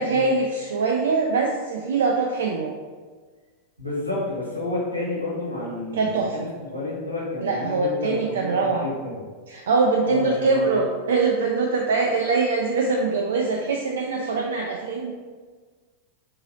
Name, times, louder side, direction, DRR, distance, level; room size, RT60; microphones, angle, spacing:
voice 1, 0.0-2.7 5.9-6.5 7.4-8.9 9.5-15.1, right 3 dB, 65° right, 1 dB, 0.3 m, -23 dB
voice 2, 3.8-9.2 10.0-10.7, left 2 dB, 90° right, -5 dB, 1.2 m, -30 dB
4.4 x 3.1 x 2.7 m, 1.5 s
figure-of-eight pair, 90°, 0 cm